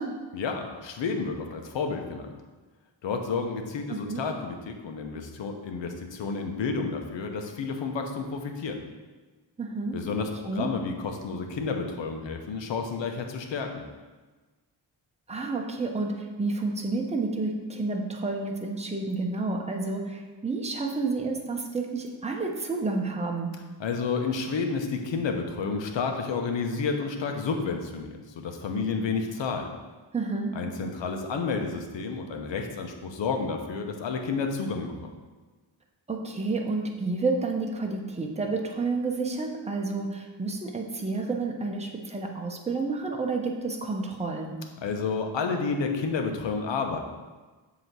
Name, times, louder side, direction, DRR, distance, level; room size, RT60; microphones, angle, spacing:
voice 1, 0.3-2.3 3.0-8.8 9.9-13.8 23.8-29.7 30.5-35.1 44.8-47.0, left 4 dB, 70° left, 4 dB, 1.0 m, -30 dB
voice 2, 3.9-4.2 9.6-10.0 10.5-10.7 15.3-23.5 30.1-30.5 36.1-44.6, right 3 dB, 15° right, 1 dB, 0.9 m, -30 dB
7.8 x 3.1 x 6.1 m, 1.3 s
cardioid pair, 90°, 45 cm